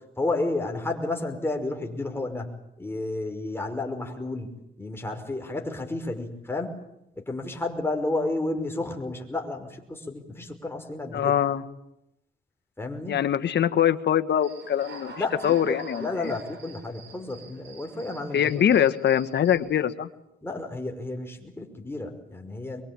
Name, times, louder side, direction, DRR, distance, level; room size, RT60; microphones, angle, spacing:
voice 1, 0.2-4.5 4.8-6.8 7.2-11.3 12.8-13.2 15.2-18.5 20.4-22.8, left 2 dB, 10° left, 3 dB, 5.5 m, -31 dB
voice 2, 11.1-11.6 13.1-15.1 15.4-16.3 18.3-20.1, left 9 dB, 60° left, 11 dB, 1.6 m, -23 dB
Human voice / Cricket, 14.4-19.6, right 4 dB, 65° right, 6.6 m, -45 dB
24.0 x 23.0 x 9.1 m, 0.84 s
cardioid pair, 90°, 20 cm